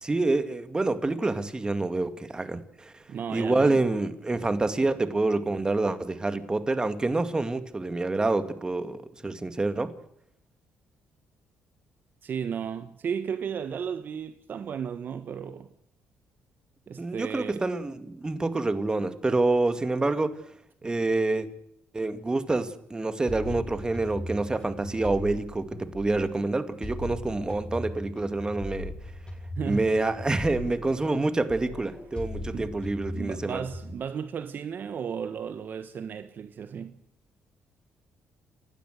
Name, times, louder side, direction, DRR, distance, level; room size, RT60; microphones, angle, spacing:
voice 1, 0.0-2.9 3.3-9.9 17.0-20.3 20.8-21.5 21.9-28.9 29.7-33.6, right 2 dB, 20° right, 2.2 m, -27 dB
voice 2, 3.1-3.8 12.2-15.7 16.9-17.6 29.6-29.9 32.5-32.7 33.1-36.9, right 7 dB, 55° right, 1.3 m, -34 dB
sound 1, 23.3-26.4 26.8-31.2 31.5-33.9, left 1 dB, 25° left, 6.8 m, -38 dB
30.0 x 12.5 x 8.1 m
cardioid pair, 85°, 4 cm